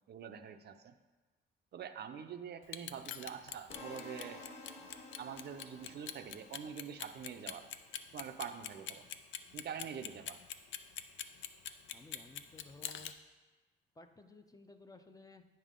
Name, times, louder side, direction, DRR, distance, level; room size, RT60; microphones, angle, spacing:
voice 1, 0.1-0.9 1.7-4.4 5.2-7.7 8.1-9.1 9.5-10.4, right 7 dB, 55° right, 8 dB, 0.6 m, -45 dB
Clock, 2.6-13.1, left 10 dB, 70° left, 0.5 m, -43 dB
sound 1, 3.7-7.8, left 2 dB, 35° left, 1.2 m, -52 dB
voice 2, 11.9-13.1 13.9-15.5, left 2 dB, 20° left, 7 dB, 0.6 m, -56 dB
9.0 x 5.5 x 3.7 m, 1.2 s
cardioid pair, 90°, 20 cm